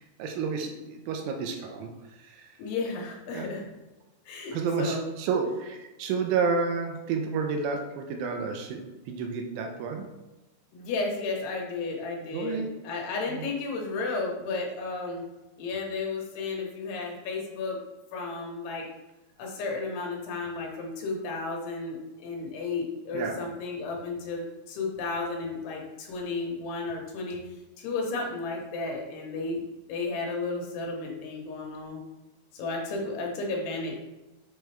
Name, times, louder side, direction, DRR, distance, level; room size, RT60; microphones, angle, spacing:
voice 1, 0.0-2.6 3.3-3.5 4.5-10.1 12.3-12.7 13.3-13.5 23.1-23.4, right 5 dB, 85° right, 3 dB, 3.1 m, -30 dB
voice 2, 2.6-3.6 4.3-5.1 10.7-15.2 15.6-17.8 18.1-18.9 19.4-27.4 27.8-29.6 29.9-32.0 32.5-34.0, left 3 dB, 70° left, -1 dB, 3.0 m, -33 dB
7.8 x 4.7 x 3.4 m, 1.1 s
omnidirectional pair, 5.4 m